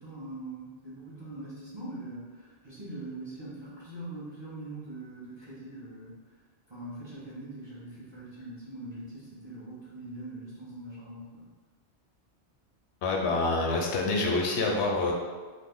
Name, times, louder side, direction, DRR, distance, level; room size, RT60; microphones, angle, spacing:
voice 1, 0.0-6.2 6.7-11.5, right 2 dB, 25° right, -9 dB, 0.8 m, -42 dB
voice 2, 13.0-15.1, left 3 dB, 75° left, 0 dB, 0.8 m, -27 dB
2.6 x 2.3 x 3.6 m, 1.4 s
omnidirectional pair, 1.1 m